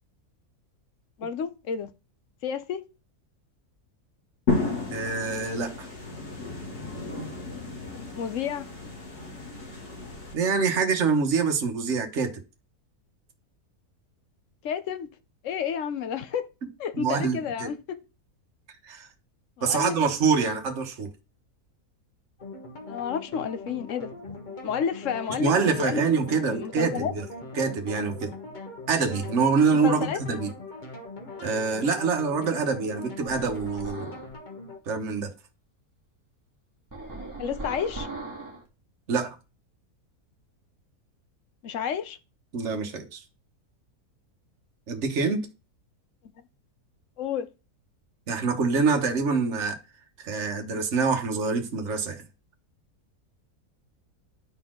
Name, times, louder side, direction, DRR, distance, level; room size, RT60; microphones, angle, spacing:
voice 1, 1.2-1.9 2.4-2.8 8.1-8.7 14.6-15.1 15.4-16.5 16.8-18.0 19.6-20.0 22.9-24.4 24.6-26.0 26.4-27.1 29.8-30.2 37.4-38.1 41.6-42.2 47.2-47.5, left 7 dB, 60° left, 1.0 m, -30 dB
sound 1, 4.5-10.3, left 3 dB, 85° left, 3.5 m, -33 dB
voice 2, 4.9-5.9 10.3-12.4 16.9-17.7 18.8-19.1 19.6-21.1 25.4-27.2 27.5-28.3 28.9-30.5 31.4-34.1 34.9-35.3 39.1-39.4 42.5-43.2 44.9-45.5 48.3-49.8 50.2-52.2, right 5 dB, 50° right, 1.4 m, -25 dB
sound 2, 22.4-34.8, left 3 dB, 30° left, 1.6 m, -41 dB
sound 3, 33.3-34.3 36.9-38.7, right 2 dB, 10° right, 2.0 m, -39 dB
11.0 x 4.2 x 3.7 m
omnidirectional pair, 1.6 m